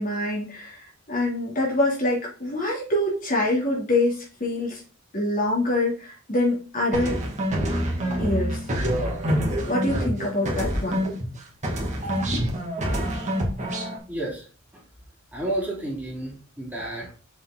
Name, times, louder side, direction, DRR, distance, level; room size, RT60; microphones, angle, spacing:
voice 1, 0.0-4.8 5.1-7.2 8.2-8.6 9.6-11.1, left 1 dB, 40° left, -3 dB, 3.0 m, -25 dB
sound 1, 6.9-11.3 11.6-14.0, equal, 35° right, 2.3 m, -26 dB
voice 2, 14.1-14.5 14.7-14.8 15.3-17.1, right 1 dB, 10° right, -5 dB, 3.2 m, -31 dB
6.9 x 5.4 x 3.9 m, 0.37 s
head